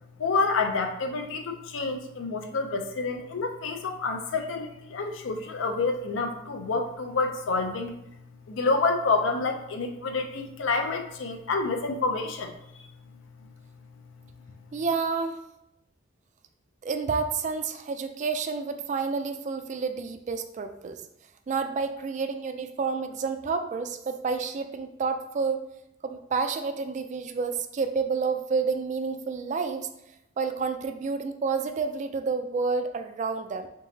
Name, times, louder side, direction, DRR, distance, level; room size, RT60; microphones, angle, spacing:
voice 1, 0.2-7.9 8.5-12.5 12.8-12.9, left 3 dB, 75° left, 6 dB, 0.5 m, -28 dB
voice 2, 14.7-15.4 16.8-21.0 21.5-25.6 26.0-29.9 30.4-33.7, right 4 dB, 40° right, 8 dB, 0.3 m, -29 dB
3.7 x 3.7 x 2.7 m, 0.83 s
head